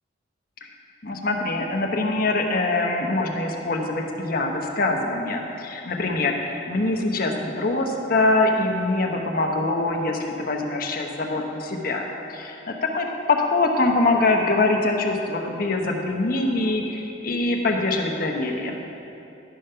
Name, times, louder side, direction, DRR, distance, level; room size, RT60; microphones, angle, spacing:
voice 1, 1.0-12.0 12.3-18.8, left 2 dB, 50° left, 2 dB, 0.9 m, -24 dB
11.5 x 5.2 x 5.6 m, 2.9 s
head